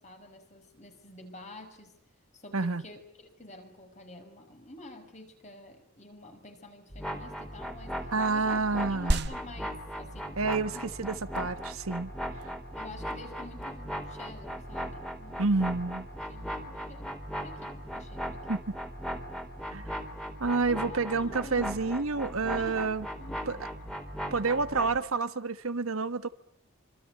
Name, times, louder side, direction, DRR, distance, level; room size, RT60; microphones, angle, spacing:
voice 1, 0.0-1.9 2.3-8.6 8.9-10.8 12.8-15.8 16.3-18.6 20.7-21.6 22.6-22.9 23.2-23.7, left 1 dB, 35° left, 6.0 m, -49 dB
voice 2, 2.5-2.9 8.1-9.3 10.4-12.1 15.4-16.1 18.5-18.8 19.7-20.0 20.4-23.1 23.5-23.7 24.3-26.3, right 3 dB, 80° right, 1.4 m, -29 dB
sound 1, 6.9-25.0, equal, 5° left, 3.9 m, -38 dB
sound 2, 9.1-19.1, right 1 dB, 50° right, 1.3 m, -39 dB
26.5 x 26.0 x 8.6 m
head